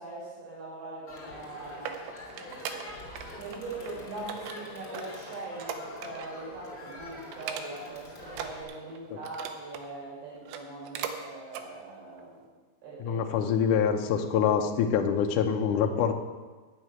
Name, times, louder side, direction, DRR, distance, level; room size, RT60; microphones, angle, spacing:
voice 1, 0.0-2.0 3.4-12.5 12.8-13.3, right 2 dB, 75° right, -5 dB, 6.7 m, -41 dB
Crowd, 1.1-8.6, left 2 dB, 20° left, 2.4 m, -44 dB
sound 1, 1.3-3.3 3.5-3.9 4.3-6.4 6.8-6.9 7.3-8.0 8.3-9.9 10.4-11.2 11.5-11.7 12.2-12.3, right 8 dB, 90° right, 3.1 m, -39 dB
voice 2, 13.0-16.1, left 7 dB, 85° left, 4 dB, 1.7 m, -25 dB
9.7 x 7.7 x 9.0 m, 1.3 s
omnidirectional pair, 5.0 m